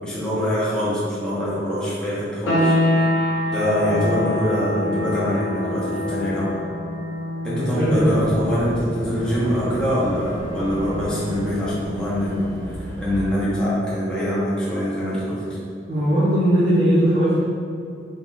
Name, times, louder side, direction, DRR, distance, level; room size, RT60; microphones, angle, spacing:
voice 1, 0.0-3.1 3.5-6.6 7.4-15.4, equal, 5° left, -9 dB, 0.8 m, -24 dB
sound 1, 2.5-13.0, left 1 dB, 85° left, 0.7 m, -27 dB
voice 2, 7.5-8.4 15.9-17.4, equal, 50° right, -16 dB, 1.4 m, -19 dB
Boat Water vehicle / Engine, 8.0-13.2, equal, 65° right, 0.7 m, -33 dB
4.4 x 4.0 x 2.4 m, 2.4 s
head